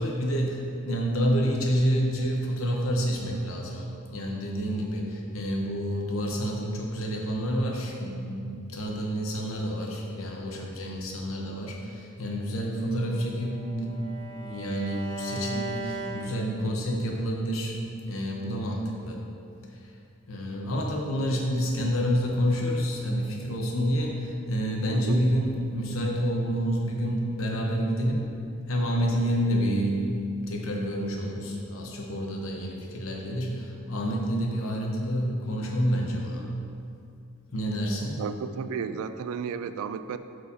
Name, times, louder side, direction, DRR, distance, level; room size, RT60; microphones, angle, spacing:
voice 1, 0.0-13.9 14.2-17.7 18.1-19.2 20.3-28.3 28.7-36.4 37.5-38.2, equal, 75° left, 0 dB, 0.9 m, -28 dB
Bowed string instrument, 12.8-17.0, right 3 dB, 25° left, 0.7 m, -39 dB
voice 2, 24.9-25.2 38.2-40.2, right 6 dB, 90° right, 12 dB, 0.3 m, -33 dB
8.3 x 4.8 x 2.7 m, 2.5 s
head